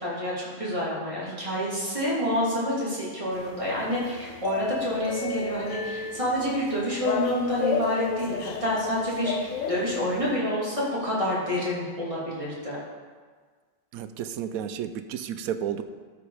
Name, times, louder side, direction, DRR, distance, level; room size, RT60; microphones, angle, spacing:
voice 1, 0.0-12.8, equal, 25° right, -7 dB, 3.0 m, -28 dB
sound 1, 3.3-10.3, left 5 dB, 75° left, 1.0 m, -33 dB
voice 2, 13.9-15.8, right 9 dB, 90° right, 10 dB, 1.1 m, -32 dB
12.5 x 5.2 x 4.9 m, 1.5 s
omnidirectional pair, 1.5 m